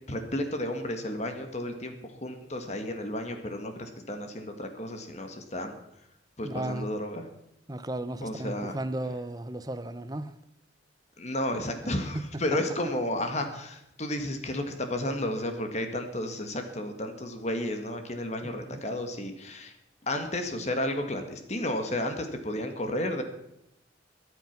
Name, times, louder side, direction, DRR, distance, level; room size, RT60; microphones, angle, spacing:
voice 1, 0.1-5.8 6.4-7.2 8.2-8.8 11.2-19.7 20.1-23.2, left 1 dB, 35° left, 1.7 m, -32 dB
voice 2, 6.4-6.9 7.7-10.3 11.8-12.2 18.4-18.8, right 1 dB, 20° right, 0.8 m, -35 dB
23.5 x 8.4 x 6.0 m
head